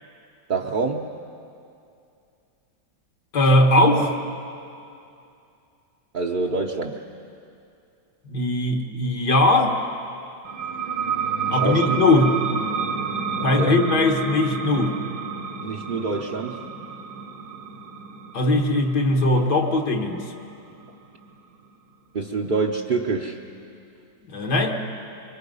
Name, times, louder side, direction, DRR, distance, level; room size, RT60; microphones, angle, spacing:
voice 1, 0.5-1.1 6.1-7.0 11.5-12.0 13.4-13.8 15.6-16.6 22.1-23.4, right 4 dB, 45° right, -1 dB, 0.7 m, -26 dB
voice 2, 3.3-4.1 8.3-9.8 11.5-12.3 13.4-15.0 18.3-20.2 24.3-24.7, left 2 dB, 70° left, 3 dB, 2.1 m, -19 dB
sound 1, 10.4-21.7, right 5 dB, 75° right, 1.7 m, -30 dB
25.0 x 23.5 x 5.4 m, 2.6 s
omnidirectional pair, 1.8 m